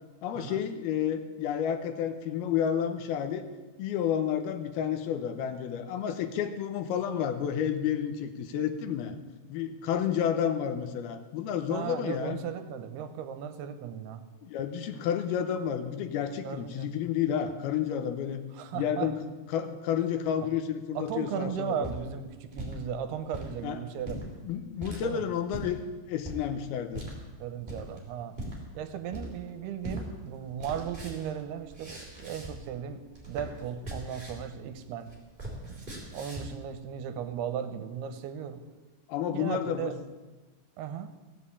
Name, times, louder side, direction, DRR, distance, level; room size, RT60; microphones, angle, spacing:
voice 1, 0.2-3.5 3.8-9.2 9.5-12.4 14.4-18.4 18.7-19.2 19.5-21.7 23.6-23.8 24.4-25.8 26.1-27.1 39.1-39.9, left 9 dB, 80° left, 7 dB, 2.7 m, -30 dB
voice 2, 11.7-14.2 16.4-17.0 18.5-19.1 21.0-24.4 25.0-25.2 27.4-28.4 28.7-33.0 33.3-35.1 35.6-38.6 39.3-39.9 40.8-41.2, right 8 dB, 85° right, 10 dB, 2.8 m, -36 dB
sound 1, 21.8-22.8 23.2-23.5 24.0-24.2 24.8-25.0 25.5-25.7 26.2-26.4 26.9-27.1 27.7-28.0 28.3-28.6 29.1-29.5 29.8-30.0 30.3-32.7 33.0-34.5 34.8-36.6, right 1 dB, 15° right, 3.0 m, -40 dB
15.5 x 7.6 x 8.5 m, 1.2 s
omnidirectional pair, 4.6 m